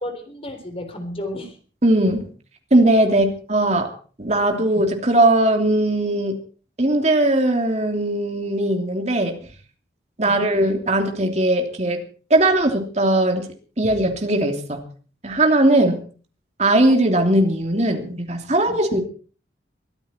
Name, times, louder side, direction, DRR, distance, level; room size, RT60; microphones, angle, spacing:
voice 1, 0.0-1.6 3.1-3.2 4.6-4.7 10.2-10.4 16.7-16.8 18.7-18.8, left 1 dB, 30° left, 6 dB, 3.7 m, -33 dB
voice 2, 1.8-2.3 2.7-3.9 4.2-6.4 6.8-9.4 10.2-12.0 12.3-13.5 13.8-14.8 15.2-16.0 16.6-19.0, right 1 dB, 35° right, 4 dB, 3.0 m, -19 dB
23.0 x 14.0 x 4.5 m, 0.41 s
head